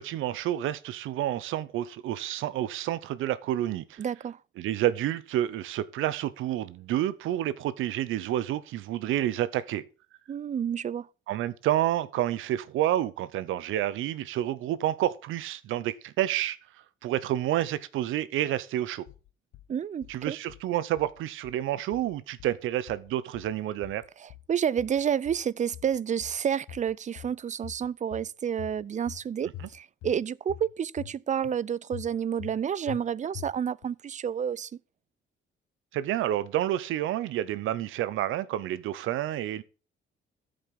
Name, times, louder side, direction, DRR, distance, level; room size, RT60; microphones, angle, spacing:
voice 1, 0.0-4.0 4.6-9.8 11.3-16.6 17.0-19.0 20.1-24.0 29.6-29.7 35.9-39.6, right 12 dB, 85° right, 0.8 m, -29 dB
voice 2, 4.0-4.4 10.3-11.1 19.7-20.4 24.2-34.7, right 8 dB, 40° right, 0.5 m, -30 dB
sound 1, 19.1-19.7 20.0-20.7 21.0-21.7 21.9-22.6 22.9-23.6 23.8-24.5 24.8-25.5 25.7-26.4 26.7-27.4 27.6-28.3 28.6-29.2 29.5-30.2 30.5-31.1 31.4-31.6 31.9-32.6 32.9-33.0 33.3-33.8, left 11 dB, 90° left, 0.8 m, -44 dB
14.0 x 5.2 x 5.9 m
cardioid pair, 90°, 20 cm